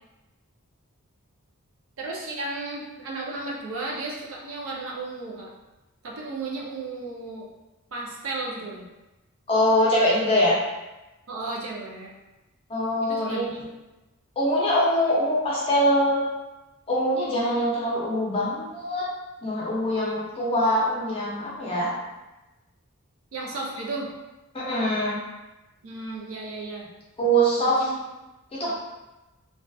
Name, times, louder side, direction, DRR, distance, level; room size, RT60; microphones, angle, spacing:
voice 1, 2.0-5.5 6.0-7.5 7.9-8.8 11.3-12.1 13.0-13.6 23.3-24.1 25.8-26.9 27.6-28.0 28.7-28.8, right 2 dB, 65° right, -2 dB, 0.5 m, -34 dB
voice 2, 9.5-10.6 12.7-13.5 14.4-16.2 16.9-19.0 19.4-21.9 24.5-25.2 27.2-27.9 28.5-28.7, equal, 25° left, -6 dB, 0.5 m, -23 dB
2.4 x 2.3 x 2.3 m, 1.0 s
head